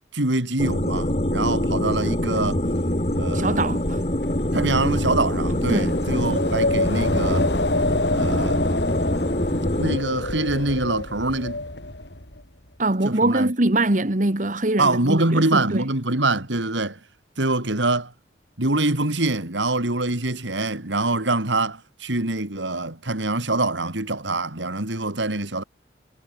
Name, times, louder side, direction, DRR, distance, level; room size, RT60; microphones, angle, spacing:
voice 1, 0.1-2.6 3.1-3.5 4.5-7.5 8.1-8.6 9.8-11.6 13.0-13.5 14.8-17.0 17.4-18.1 18.6-25.6, right 2 dB, 85° right, 3.2 m, -24 dB
sound 1, 0.6-10.0, left 1 dB, 35° left, 3.2 m, -24 dB
Wind, 2.3-12.4, left 2 dB, 70° left, 7.1 m, -28 dB
voice 2, 3.3-4.0 5.7-5.9 12.8-15.8, right 2 dB, 45° right, 1.7 m, -23 dB
head